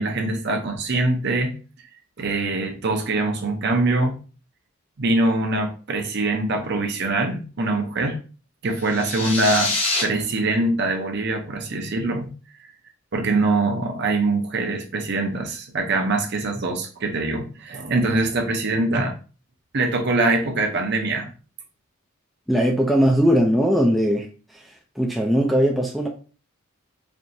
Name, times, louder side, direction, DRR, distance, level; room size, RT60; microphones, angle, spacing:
voice 1, 0.0-1.5 2.2-4.2 5.0-8.2 8.6-9.7 10.0-12.3 13.1-19.1 19.7-21.3, right 2 dB, 50° right, 0.7 m, -23 dB
sound 1, 8.8-10.0, left 3 dB, 25° left, 0.7 m, -25 dB
voice 2, 22.5-24.3 25.0-26.1, equal, ahead, 0.3 m, -19 dB
4.4 x 2.7 x 2.6 m
head